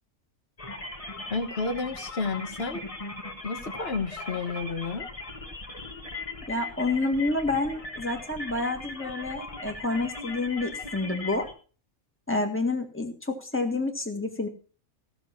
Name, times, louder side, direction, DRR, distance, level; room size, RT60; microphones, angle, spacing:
sound 1, 0.6-11.5, left 2 dB, 25° left, 1.5 m, -39 dB
voice 1, 1.3-2.8 3.4-5.1, left 4 dB, 45° left, 7 dB, 1.5 m, -31 dB
voice 2, 6.5-11.5 12.3-14.5, left 2 dB, 10° left, 4 dB, 1.8 m, -29 dB
16.0 x 6.8 x 5.9 m, 0.39 s
omnidirectional pair, 1.4 m